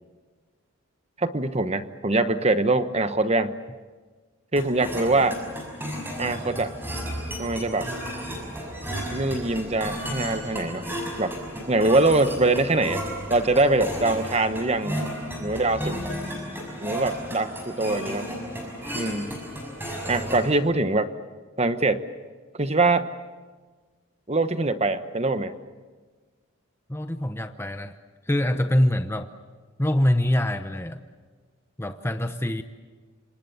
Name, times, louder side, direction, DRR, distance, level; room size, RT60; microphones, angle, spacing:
voice 1, 1.2-3.5 4.5-5.4 6.2-6.7 7.4-7.9 9.1-10.9 11.2-11.3 11.7-13.0 13.3-15.0 15.4-16.0 16.8-18.3 18.9-19.4 20.1-21.1 21.6-22.0 22.5-23.1 24.3-25.5, right 2 dB, 30° right, 10 dB, 1.0 m, -23 dB
sound 1, 4.6-20.6, equal, 10° right, 6.1 m, -33 dB
voice 2, 26.9-28.0 28.3-29.3 29.8-31.0 31.8-32.6, left 1 dB, 10° left, 8 dB, 0.8 m, -24 dB
28.0 x 26.0 x 7.1 m, 1.4 s
head